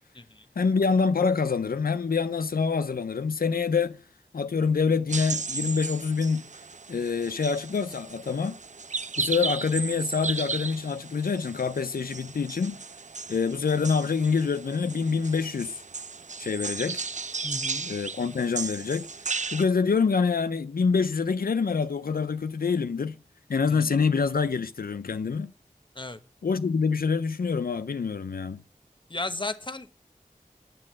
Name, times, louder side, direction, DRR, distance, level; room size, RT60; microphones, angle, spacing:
voice 1, 0.6-4.0 4.3-6.4 6.9-8.6 9.2-12.8 13.3-15.8 16.4-17.0 17.9-19.1 19.5-23.2 23.5-25.5 26.4-28.6, left 5 dB, 90° left, 0.4 m, -26 dB
sound 1, 5.1-19.6, right 4 dB, 55° right, 0.5 m, -35 dB
voice 2, 17.4-17.9 23.7-24.0 25.9-26.2 29.1-29.9, left 2 dB, 35° left, 1.0 m, -35 dB
9.7 x 7.5 x 7.5 m
wide cardioid pair, 50°, 15 cm